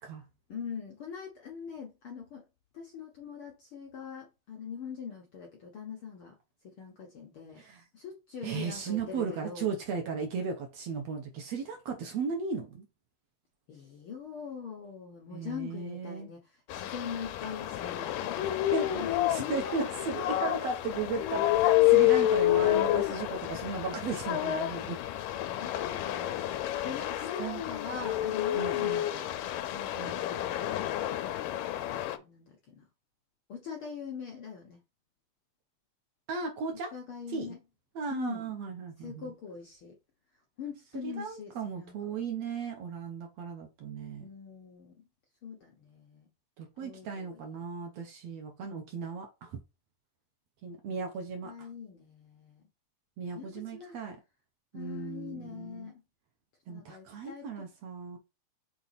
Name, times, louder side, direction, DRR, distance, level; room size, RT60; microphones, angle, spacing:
voice 1, 0.5-2.4 2.7-6.3 6.6-9.7 13.7-19.1 19.4-19.9 22.7-23.1 25.5-29.3 29.7-30.8 31.7-32.8 33.5-34.8 36.9-37.6 38.1-38.6 39.0-39.9 40.6-42.2 44.2-44.9 45.4-46.3 46.8-47.6 50.9-51.0 51.4-52.7 53.3-54.0 54.7-56.0 56.7-57.7, left 6 dB, 70° left, 1.3 m, -43 dB
voice 2, 8.4-12.9 15.3-16.3 18.7-19.0 19.3-25.0 27.4-27.6 28.5-29.0 29.9-30.2 36.3-36.9 37.3-37.6 38.0-39.3 41.0-44.3 46.6-49.6 50.6-51.7 53.2-54.2 54.7-55.9 56.7-58.2, right 5 dB, 65° right, 1.8 m, -36 dB
sound 1, 16.7-32.2, left 14 dB, 85° left, 2.3 m, -29 dB
6.0 x 4.0 x 4.1 m
omnidirectional pair, 3.9 m